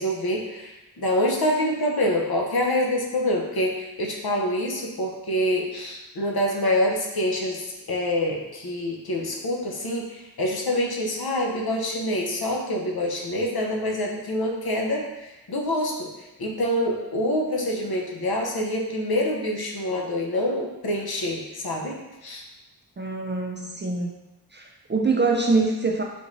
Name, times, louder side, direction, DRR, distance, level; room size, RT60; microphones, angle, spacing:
voice 1, 0.0-16.1 16.4-22.4, left 1 dB, 60° left, 0 dB, 0.7 m, -26 dB
voice 2, 23.0-24.1 24.5-26.0, right 3 dB, 30° right, 0 dB, 0.4 m, -24 dB
3.5 x 2.5 x 3.1 m, 1.0 s
wide cardioid pair, 45°, 41 cm